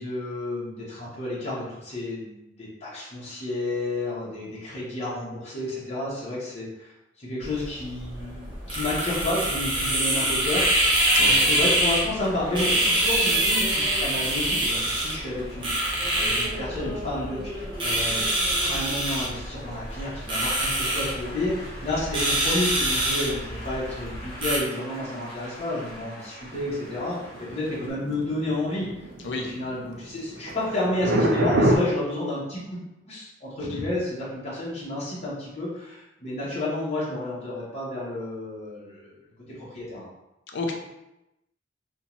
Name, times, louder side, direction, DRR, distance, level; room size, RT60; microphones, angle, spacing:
voice 1, 0.0-2.5 2.8-6.9 7.2-28.9 29.3-32.8 33.1-39.1 39.7-40.1, left 1 dB, 35° left, -7 dB, 0.7 m, -31 dB
sound 1, 7.4-24.6, right 1 dB, 30° right, 0.7 m, -25 dB
Applause, 8.2-27.9, equal, 10° left, 1.2 m, -42 dB
voice 2, 11.1-11.5 29.2-29.5 33.6-33.9 40.5-40.7, left 3 dB, 70° left, 2 dB, 0.5 m, -31 dB
sound 2, 26.5-31.8, right 1 dB, 60° right, 0.4 m, -25 dB
2.6 x 2.1 x 2.9 m, 0.91 s
head